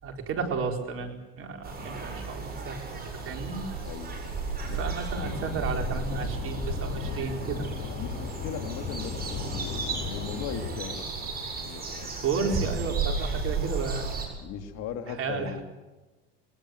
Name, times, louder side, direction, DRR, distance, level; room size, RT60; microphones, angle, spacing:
voice 1, 0.0-3.6 4.6-7.7 12.2-14.1 15.1-15.6, right 5 dB, 45° right, 4 dB, 4.5 m, -33 dB
sound 1, 1.6-14.3, right 4 dB, 30° right, 7.9 m, -34 dB
voice 2, 3.8-4.3 4.6-4.8 8.0-12.1 12.8-12.9 14.4-15.6, left 7 dB, 65° left, 7 dB, 2.8 m, -39 dB
sound 2, 5.1-10.8, left 4 dB, 50° left, 4.7 m, -36 dB
22.5 x 19.5 x 7.9 m, 1.1 s
supercardioid pair, 95°, 29 cm